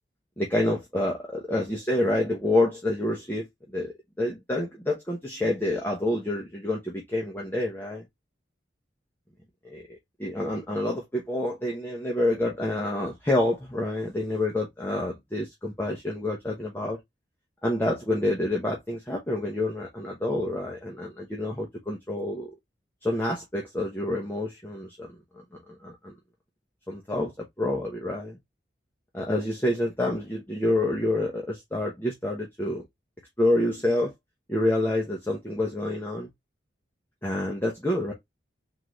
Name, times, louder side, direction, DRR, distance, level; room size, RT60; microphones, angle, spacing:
voice 1, 0.4-3.5 3.7-8.0 9.6-9.9 10.2-17.0 17.6-22.5 23.0-25.1 25.8-26.1 26.9-28.4 29.1-32.8 33.4-34.1 34.5-36.3 37.2-38.1, left 1 dB, 10° left, 1.0 m, -28 dB
4.0 x 3.7 x 3.1 m
head